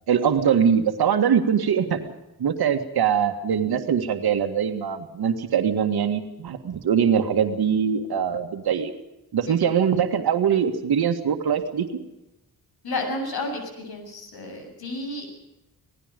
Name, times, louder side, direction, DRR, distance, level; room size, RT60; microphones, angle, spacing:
voice 1, 0.0-2.1 2.4-8.9 9.3-11.9, right 7 dB, 90° right, 6 dB, 2.0 m, -22 dB
voice 2, 12.8-15.4, left 2 dB, 80° left, 3 dB, 7.5 m, -31 dB
27.0 x 18.5 x 5.3 m, 0.94 s
wide cardioid pair, 165°, 37 cm